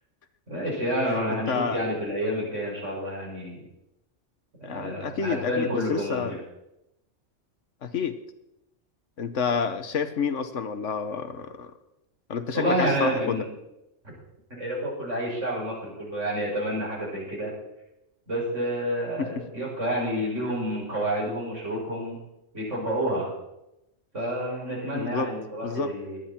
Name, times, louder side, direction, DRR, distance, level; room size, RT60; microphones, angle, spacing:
voice 1, 0.5-3.6 4.7-6.4 12.5-13.4 14.5-17.5 18.3-22.1 22.5-23.3 24.1-26.2, equal, 85° right, -5 dB, 6.5 m, -29 dB
voice 2, 1.1-1.8 4.6-6.4 7.8-8.2 9.2-11.7 12.3-13.4 19.2-19.3 24.9-25.3 25.6-25.9, left 6 dB, 85° left, 10 dB, 1.4 m, -29 dB
18.0 x 12.0 x 4.4 m, 0.89 s
omnidirectional pair, 1.2 m